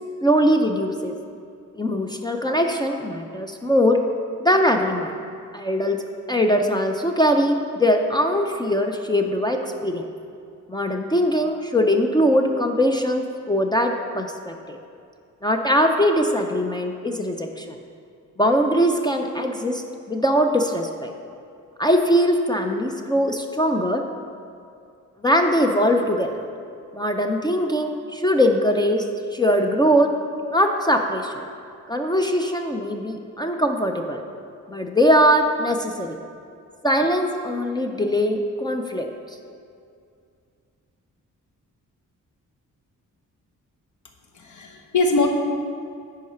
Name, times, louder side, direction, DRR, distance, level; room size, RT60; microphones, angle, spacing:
voice 1, 0.2-1.1 1.8-4.0 4.4-5.1 5.5-6.0 6.3-10.1 10.7-14.8 15.4-17.8 18.4-21.1 21.8-24.0 25.2-26.4 26.9-29.0 29.3-30.1 30.5-31.4 31.9-34.2 34.7-36.2 36.8-39.1, equal, 15° left, 3 dB, 0.3 m, -21 dB
voice 2, 44.3-45.3, left 3 dB, 65° left, 3 dB, 1.0 m, -22 dB
9.3 x 4.8 x 5.5 m, 2.4 s
wide cardioid pair, 170°, 31 cm